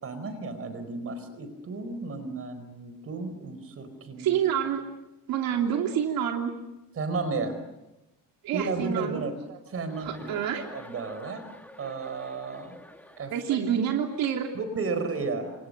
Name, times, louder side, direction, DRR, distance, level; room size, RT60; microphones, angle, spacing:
voice 1, 0.0-4.4 7.0-7.6 8.5-9.3 9.7-11.5 11.8-12.8 13.2-13.3 14.5-15.7, right 4 dB, 40° right, 10 dB, 4.6 m, -33 dB
voice 2, 4.2-4.8 5.3-6.5 8.4-9.2 9.5-9.6 10.0-10.6 13.3-14.5, right 9 dB, 90° right, 2 dB, 3.1 m, -27 dB
Chuckle chortle, 9.9-13.6, left 1 dB, 5° left, 2.3 m, -49 dB
28.5 x 28.0 x 6.7 m, 0.96 s
cardioid pair, 155°, 34 cm